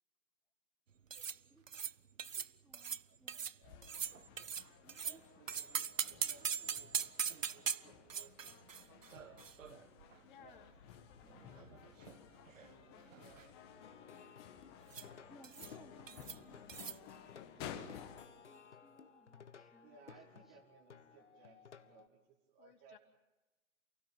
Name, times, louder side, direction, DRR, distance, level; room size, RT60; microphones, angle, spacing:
voice 1, 1.1-1.6 2.3-3.4 4.8-5.2 11.2-11.5 13.0-13.4 14.7-14.8 15.3-17.0 17.5-20.6, right 1 dB, ahead, 6 dB, 0.8 m, -65 dB
sound 1, 1.1-1.4 1.7-1.9 2.2-2.5 2.7-3.0 3.3-3.6 3.8-5.2 5.5-10.2 10.4-10.5 11.3-12.2 12.5-12.7 13.0-13.5 14.9-15.1 15.4-15.8 16.1-16.4 16.7-17.0, right 7 dB, 75° right, 0.8 m, -41 dB
voice 2, 3.0-4.1 5.0-7.1 7.3-9.5 10.4-10.6 13.1-13.5 19.8-23.0, right 6 dB, 20° right, -1 dB, 2.0 m, -64 dB
sound 2, 3.6-18.3, left 8 dB, 20° left, 1.4 m, -55 dB
voice 3, 10.2-10.8 11.1-12.3 22.6-23.0, left 8 dB, 40° left, 5 dB, 2.6 m, -62 dB
Plucked string instrument, 13.8-22.1, left 7 dB, 60° left, 1.3 m, -58 dB
29.0 x 16.5 x 8.7 m, 1.1 s
figure-of-eight pair, 140°, 40 cm